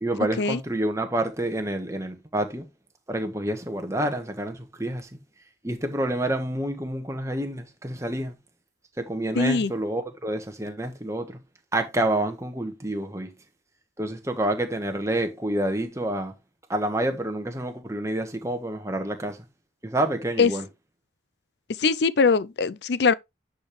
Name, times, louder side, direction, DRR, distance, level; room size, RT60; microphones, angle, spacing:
voice 1, 0.0-2.7 3.1-5.1 5.6-8.3 9.0-11.4 11.7-13.3 14.0-16.3 16.7-19.4 19.8-20.6, right 1 dB, 15° right, 1.2 m, -28 dB
voice 2, 9.4-9.7 20.4-20.5 21.8-23.1, left 4 dB, 60° left, 0.5 m, -21 dB
9.6 x 5.1 x 3.2 m
head